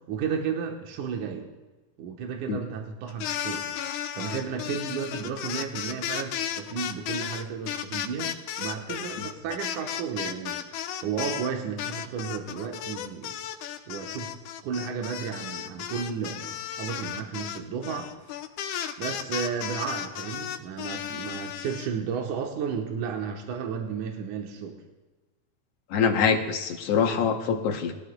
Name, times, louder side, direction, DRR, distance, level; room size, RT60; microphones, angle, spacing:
voice 1, 0.1-1.5 2.0-8.3 8.6-10.6 11.0-13.4 13.9-14.3 14.6-18.1 19.0-24.8, right 6 dB, 85° right, 2 dB, 2.5 m, -33 dB
sound 1, 3.1-11.5 11.8-21.9, left 10 dB, 85° left, 2.2 m, -34 dB
voice 2, 25.9-27.9, left 6 dB, 65° left, 5 dB, 1.7 m, -24 dB
20.5 x 14.0 x 2.2 m, 1.2 s
omnidirectional pair, 3.5 m